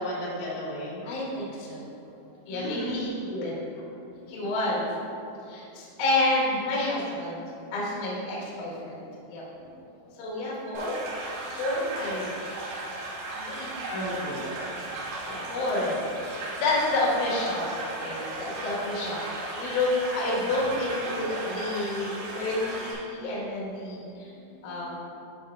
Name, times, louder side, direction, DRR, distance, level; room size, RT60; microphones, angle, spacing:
voice 1, 0.0-1.1 2.5-2.9 4.3-4.4 9.6-9.7 13.9-14.5 24.4-24.7, equal, 80° left, -7 dB, 4.1 m, -34 dB
voice 2, 1.0-1.8 2.5-3.6 4.3-4.8 5.3-7.4 7.7-9.0 9.3-9.4 10.2-12.3 13.3-13.8 15.2-16.0 16.6-24.3 24.6-24.9, left 2 dB, 60° left, -6 dB, 2.3 m, -29 dB
sound 1, 10.8-22.9, right 2 dB, 70° right, 3.0 m, -36 dB
11.0 x 5.6 x 2.4 m, 2.8 s
omnidirectional pair, 5.6 m